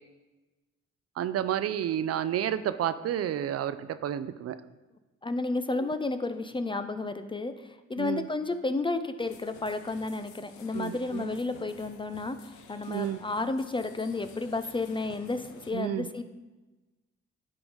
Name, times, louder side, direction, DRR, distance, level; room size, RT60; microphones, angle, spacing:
voice 1, 1.2-4.6 5.8-5.9 8.0-8.3 10.7-11.4 12.9-13.2 15.7-16.1, right 10 dB, 55° right, 12 dB, 0.4 m, -31 dB
voice 2, 5.2-16.2, left 3 dB, 20° left, 10 dB, 0.4 m, -32 dB
sound 1, 9.2-15.7, left 6 dB, 85° left, 0.7 m, -52 dB
10.5 x 3.8 x 3.9 m, 1.1 s
cardioid pair, 80°, 29 cm